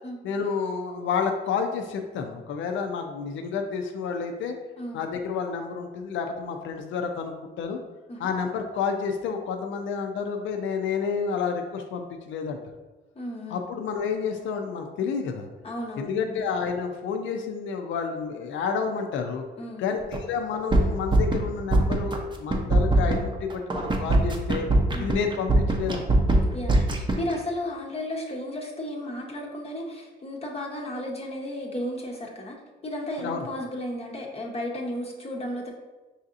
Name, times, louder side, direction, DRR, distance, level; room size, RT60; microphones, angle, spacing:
voice 1, 0.2-4.6 4.9-7.8 8.2-12.6 13.5-15.5 16.0-19.4 19.8-24.7 25.0-26.0 33.2-33.5, left 5 dB, 75° left, 4 dB, 0.5 m, -30 dB
voice 2, 13.2-13.8 15.6-16.3 19.6-20.0 24.9-25.1 26.5-26.7 27.1-32.6 32.8-35.7, left 1 dB, 30° left, -1 dB, 0.7 m, -34 dB
sound 1, 20.1-20.2 20.5-21.4 21.7-22.2 22.5-27.3, right 2 dB, 25° right, 0.6 m, -21 dB
5.6 x 2.7 x 2.5 m, 1.2 s
cardioid pair, 90°, 20 cm